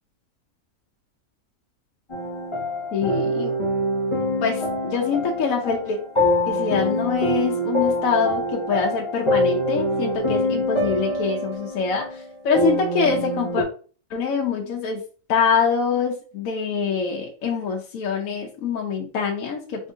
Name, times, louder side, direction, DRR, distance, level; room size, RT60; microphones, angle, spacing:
sound 1, 2.1-13.6, left 1 dB, 25° left, 0.8 m, -25 dB
voice 1, 2.9-3.5 4.4-6.0 6.5-13.7 14.1-15.0 15.3-19.9, left 5 dB, 75° left, -1 dB, 1.1 m, -24 dB
3.6 x 3.6 x 2.6 m, 0.39 s
omnidirectional pair, 1.5 m